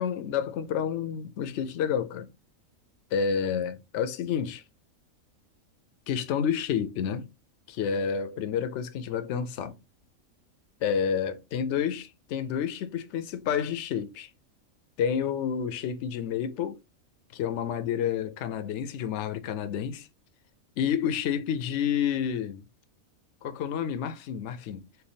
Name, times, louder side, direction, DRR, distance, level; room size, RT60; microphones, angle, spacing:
voice 1, 0.0-2.3 3.1-4.6 6.1-7.3 7.7-9.8 10.8-14.3 15.0-16.8 17.3-20.1 20.8-22.6 23.4-24.9, left 8 dB, 65° left, 0.8 m, -29 dB
3.3 x 2.2 x 4.0 m
omnidirectional pair, 1.4 m